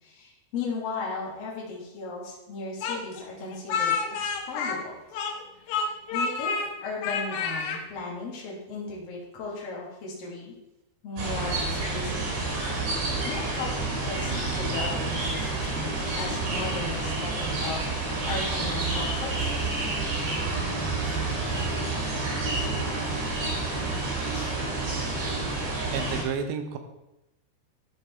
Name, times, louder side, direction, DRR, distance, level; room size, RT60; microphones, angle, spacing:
voice 1, 0.0-4.9 5.6-10.5 11.0-12.5 13.2-17.9 18.2-19.8 21.0-21.2 21.5-21.9 22.9-23.1 24.3-24.5, left 3 dB, 45° left, -3 dB, 2.7 m, -37 dB
Speech, 2.8-5.4 5.7-6.7 7.0-7.8, left 5 dB, 70° left, 2.4 m, -29 dB
sound 1, 11.2-26.2, right 3 dB, 65° right, 4.1 m, -29 dB
voice 2, 25.9-26.8, right 6 dB, 80° right, 7 dB, 3.0 m, -30 dB
12.5 x 5.0 x 4.4 m, 0.96 s
omnidirectional pair, 5.0 m